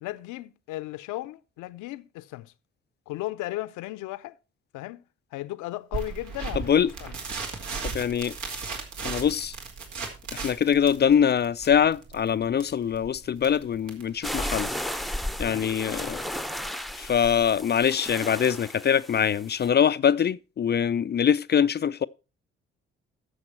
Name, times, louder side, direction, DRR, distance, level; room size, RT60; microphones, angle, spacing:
voice 1, 0.0-2.5 3.1-4.4 4.7-5.0 5.3-7.1 15.4-15.8, left 17 dB, 65° left, 0.7 m, -36 dB
sound 1, 5.9-15.1, right 4 dB, 70° right, 2.5 m, -37 dB
voice 2, 7.8-8.3 9.0-9.5 10.3-14.7 15.4-16.2 17.0-22.1, left 8 dB, 30° left, 0.5 m, -23 dB
sound 2, 14.2-19.7, left 1 dB, ahead, 0.8 m, -34 dB
12.5 x 7.2 x 4.5 m
figure-of-eight pair, 40°, 33 cm